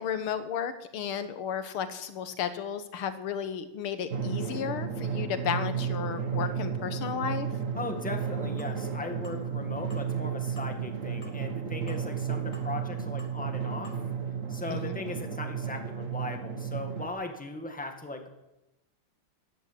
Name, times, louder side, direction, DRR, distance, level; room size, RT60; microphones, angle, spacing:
voice 1, 0.0-7.5 14.7-15.0, left 8 dB, 75° left, 11 dB, 2.0 m, -33 dB
Drum, 4.1-17.1, right 7 dB, 40° right, 1.9 m, -33 dB
voice 2, 7.8-13.9 14.5-18.3, left 2 dB, 5° left, 4 dB, 1.7 m, -38 dB
sound 1, 8.6-8.8 9.2-9.4 9.9-10.1 10.6-10.7 11.2-11.4 11.9-12.1 12.5-12.7 13.2-13.4 13.8-13.9, equal, 30° left, 2.2 m, -53 dB
14.0 x 12.0 x 8.2 m, 0.96 s
omnidirectional pair, 2.4 m